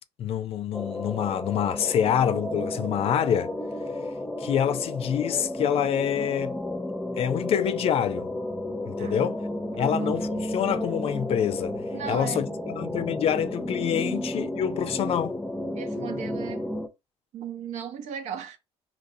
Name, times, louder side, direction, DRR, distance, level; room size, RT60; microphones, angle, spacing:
voice 1, 0.2-3.5 4.4-6.6 7.2-8.3 8.8-9.4 9.8-11.8 12.1-15.3, left 9 dB, 55° left, 0.4 m, -26 dB
sound 1, 0.7-16.9, left 1 dB, 10° left, 0.6 m, -32 dB
voice 2, 9.0-9.3 9.7-10.2 11.9-12.5 13.9-14.2 15.7-16.7 17.3-18.6, right 8 dB, 70° right, 0.8 m, -37 dB
3.9 x 2.9 x 2.6 m
cardioid pair, 95°, 12 cm